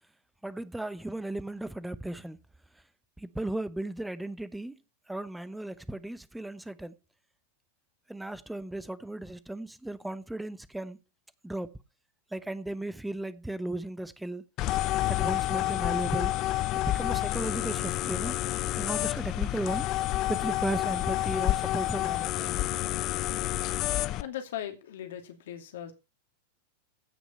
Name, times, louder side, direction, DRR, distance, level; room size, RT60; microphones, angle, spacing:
voice 1, 0.4-2.4 3.2-4.8 5.1-6.9 8.1-11.0 11.4-11.7 12.3-14.5 15.1-16.3 16.7-18.4 18.7-19.9 20.3-22.5, right 1 dB, 5° right, 0.9 m, -35 dB
sound 1, 14.6-24.2, left 16 dB, 35° left, 0.6 m, -29 dB
voice 2, 24.2-25.9, left 10 dB, 60° left, 2.5 m, -38 dB
16.0 x 6.1 x 5.5 m
figure-of-eight pair, 90°, 0 cm